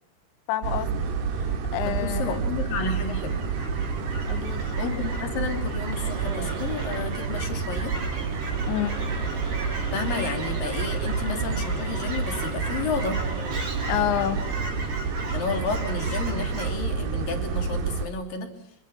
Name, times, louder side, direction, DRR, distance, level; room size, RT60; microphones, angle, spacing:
voice 1, 0.5-2.4 4.3-4.7 8.7-9.0 13.9-14.5, left 12 dB, 80° left, 3.5 m, -29 dB
sound 1, 0.6-18.1, right 5 dB, 65° right, 3.8 m, -29 dB
voice 2, 1.8-3.4 4.8-8.0 9.9-13.2 15.3-18.5, left 4 dB, 50° left, 4.5 m, -31 dB
Fowl / Chirp tweet, 2.0-16.7, right 2 dB, 45° right, 5.9 m, -38 dB
sound 2, 4.6-5.3 5.6-5.7 5.9-7.2 7.8-14.6, right 2 dB, 25° right, 4.0 m, -42 dB
26.5 x 23.5 x 6.0 m
omnidirectional pair, 5.3 m